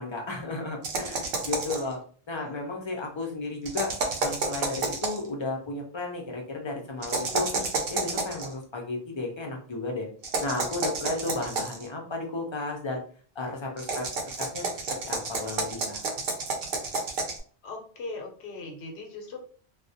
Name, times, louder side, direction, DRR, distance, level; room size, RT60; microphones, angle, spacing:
voice 1, 0.0-2.0 2.3-3.9 4.2-10.1 10.4-13.0 13.4-14.0 14.5-14.6 15.0-16.0, left 3 dB, 40° left, 1 dB, 0.4 m, -33 dB
sound 1, 0.8-1.9 3.6-5.3 7.0-8.5 10.2-11.9 13.8-17.4, right 3 dB, 65° right, 0.7 m, -30 dB
voice 2, 17.6-19.4, left 3 dB, 85° left, 1 dB, 0.9 m, -39 dB
2.3 x 2.0 x 2.6 m, 0.43 s
omnidirectional pair, 1.1 m